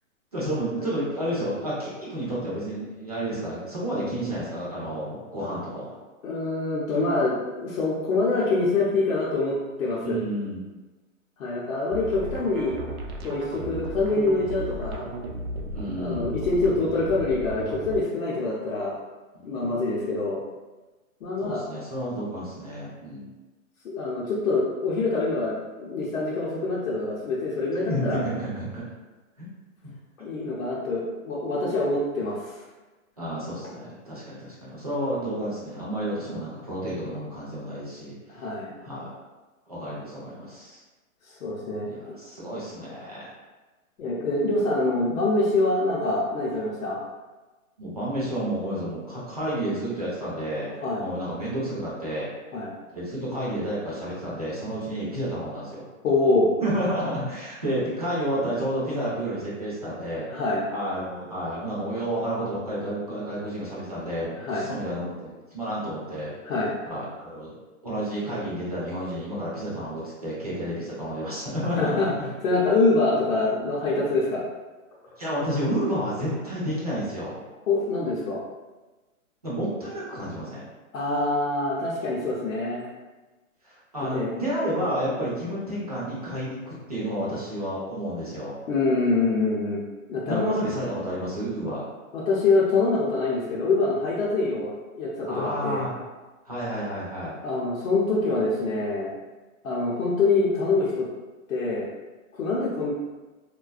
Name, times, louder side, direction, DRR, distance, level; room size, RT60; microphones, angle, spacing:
voice 1, 0.3-5.9 10.0-10.7 15.7-16.3 19.3-19.8 21.4-23.3 27.9-28.8 29.4-29.5 33.2-38.1 38.8-39.1 39.7-40.8 41.9-43.3 47.8-52.3 52.9-55.9 56.6-60.4 60.7-66.3 66.9-72.3 75.2-77.4 79.4-80.7 83.6-88.6 90.3-91.8 95.3-96.0 96.4-97.3, right 1 dB, 30° right, -8 dB, 0.4 m, -30 dB
voice 2, 6.2-10.2 11.4-12.8 13.2-15.1 16.0-18.9 19.4-20.4 21.2-21.7 23.8-28.2 30.2-32.6 38.3-38.7 41.2-41.9 44.0-47.0 50.8-51.1 52.5-52.7 56.0-56.5 60.3-60.6 64.4-64.7 66.4-66.7 71.8-72.1 72.4-74.4 77.7-78.4 80.9-82.9 84.0-84.3 88.7-89.8 90.1-90.6 92.1-95.8 97.4-99.1 99.6-101.1 101.5-101.9 102.3-102.9, left 3 dB, 70° left, -6 dB, 0.6 m, -25 dB
sound 1, 11.9-18.0, right 1 dB, 90° right, 0.6 m, -35 dB
2.4 x 2.2 x 2.3 m, 1.2 s
hypercardioid pair, 170°, 42 cm